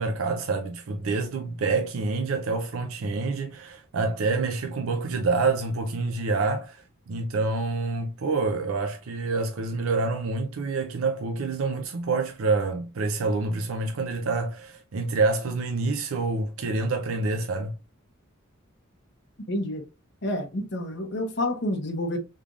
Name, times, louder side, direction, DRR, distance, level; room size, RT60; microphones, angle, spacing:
voice 1, 0.0-17.7, right 3 dB, 85° right, 0.5 m, -27 dB
voice 2, 19.5-19.9 20.2-22.2, left 1 dB, 55° left, 0.8 m, -29 dB
3.6 x 3.4 x 2.4 m
head